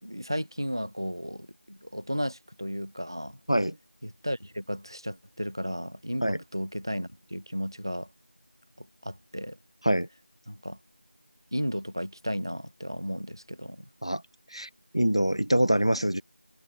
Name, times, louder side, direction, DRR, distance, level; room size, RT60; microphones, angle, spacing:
voice 1, 0.0-3.4 4.0-8.1 8.8-9.6 10.5-10.8 11.5-13.9, equal, 20° right, 2.8 m, -34 dB
voice 2, 14.5-16.2, right 1 dB, 30° left, 0.8 m, -25 dB
figure-of-eight pair, 180°, 6 cm